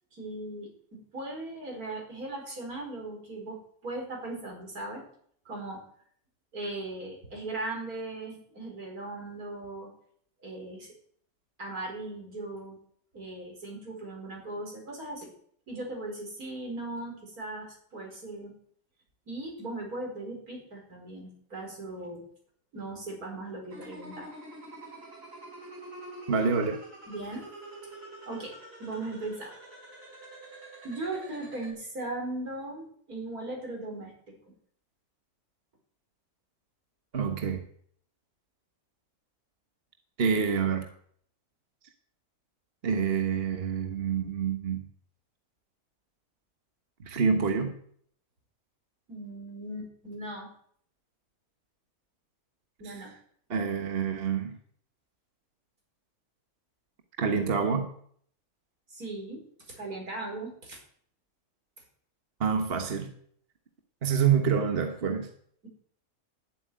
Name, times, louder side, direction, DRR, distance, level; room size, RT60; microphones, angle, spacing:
voice 1, 0.1-5.0 5.5-5.8 6.5-9.9 10.4-10.9 11.6-12.8 13.1-15.3 15.7-18.5 19.3-22.2 22.7-24.3 27.1-27.5 28.3-28.5 28.8-29.5 30.8-34.1 49.1-50.5 52.8-53.1 58.9-60.8, right 2 dB, 75° right, 0 dB, 5.2 m, -38 dB
sound 1, 23.7-31.7, right 2 dB, 60° right, 4.6 m, -46 dB
voice 2, 26.3-26.8 37.1-37.6 40.2-40.9 42.8-44.8 47.0-47.7 52.8-52.9 53.5-54.6 57.2-57.9 62.4-63.1 64.0-65.3, right 6 dB, 40° right, 6 dB, 1.5 m, -27 dB
12.5 x 8.1 x 9.5 m, 0.62 s
omnidirectional pair, 1.6 m